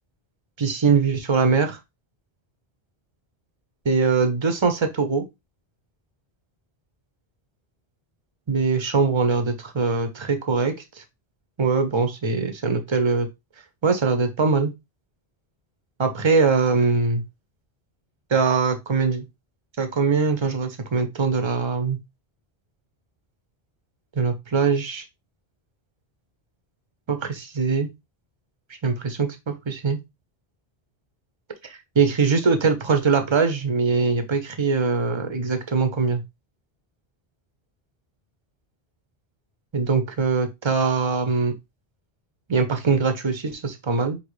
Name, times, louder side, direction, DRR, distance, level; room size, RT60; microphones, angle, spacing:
voice 1, 0.6-1.8 3.8-5.2 8.5-10.7 11.6-13.3 13.8-14.7 16.0-17.2 18.3-19.2 19.8-22.0 24.2-25.0 27.1-27.9 28.8-30.0 31.6-36.2 39.7-41.5 42.5-44.2, right 4 dB, 30° right, 0.8 m, -22 dB
5.4 x 2.9 x 3.2 m
omnidirectional pair, 1.0 m